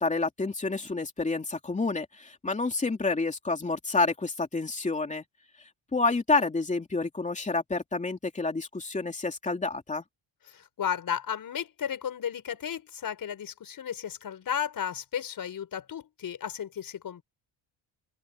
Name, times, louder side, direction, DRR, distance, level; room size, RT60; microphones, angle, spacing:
voice 1, 0.0-5.2 5.9-10.0, left 3 dB, 15° left, 3.2 m, -29 dB
voice 2, 10.5-17.2, left 8 dB, 45° left, 5.9 m, -34 dB
open air
cardioid pair, 150°, 46 cm